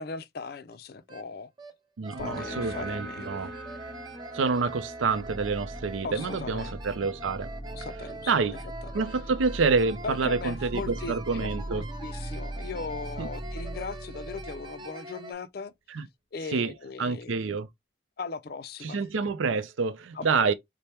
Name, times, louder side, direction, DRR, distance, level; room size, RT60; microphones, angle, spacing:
voice 1, 0.0-1.5 2.2-3.4 6.0-6.7 7.7-8.5 8.8-8.9 10.0-15.7 16.3-17.3 18.2-19.0 20.1-20.5, left 4 dB, 50° left, 0.4 m, -38 dB
sound 1, 0.7-0.8 1.1-1.2 1.6-1.7 2.0-15.3, right 2 dB, 25° right, 0.6 m, -44 dB
voice 2, 2.0-3.5 4.3-7.5 8.3-8.6 8.9-11.8 13.2-13.3 15.9-16.0 16.5-16.7 17.0-17.7 18.8-20.5, right 4 dB, 85° right, 0.5 m, -27 dB
sound 2, 2.2-9.5, right 1 dB, 50° right, 1.2 m, -44 dB
sound 3, 5.0-14.8, right 1 dB, 10° left, 0.8 m, -40 dB
4.3 x 2.1 x 3.3 m
head